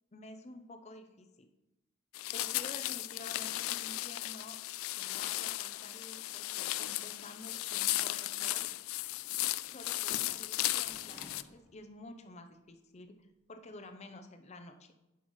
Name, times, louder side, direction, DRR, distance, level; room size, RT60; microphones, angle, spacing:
voice 1, 0.1-1.5 2.3-4.6 5.0-8.7 9.7-14.9, left 2 dB, 30° left, 7 dB, 0.6 m, -50 dB
sound 1, 2.1-11.4, left 17 dB, 80° left, 0.3 m, -36 dB
Sliding door, 8.0-12.1 12.5-12.6, equal, 5° right, 0.9 m, -61 dB
10.5 x 5.8 x 3.1 m, 0.97 s
head